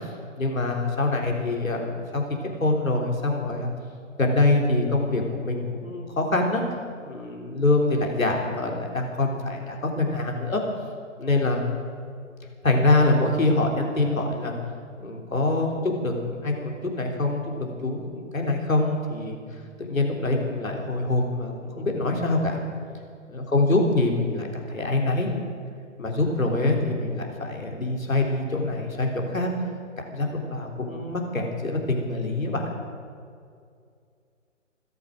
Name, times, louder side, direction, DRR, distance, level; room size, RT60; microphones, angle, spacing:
voice 1, 0.4-2.2 2.6-3.7 4.2-6.6 7.0-10.6 11.2-11.6 12.6-14.5 15.0-19.4 19.8-22.6 23.3-25.4 26.0-29.5 30.1-32.6, left 2 dB, 85° left, 1 dB, 3.5 m, -25 dB
16.5 x 13.0 x 6.4 m, 2.3 s
figure-of-eight pair, 145°, 40 cm